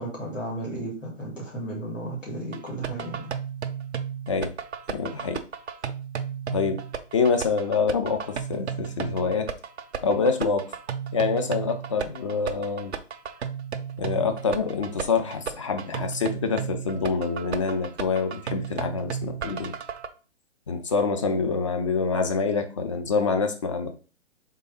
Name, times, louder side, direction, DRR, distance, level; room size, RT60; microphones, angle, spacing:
voice 1, 0.0-3.3, right 2 dB, 85° left, -4 dB, 2.5 m, -34 dB
sound 1, 2.5-20.1, right 7 dB, 60° right, 0.6 m, -34 dB
voice 2, 4.9-5.4 6.5-6.8 7.1-9.5 10.0-10.7 11.1-12.9 14.0-19.7 20.7-23.9, left 4 dB, 25° left, 6 dB, 0.5 m, -26 dB
3.7 x 3.3 x 4.1 m, 0.36 s
figure-of-eight pair, 130°, 37 cm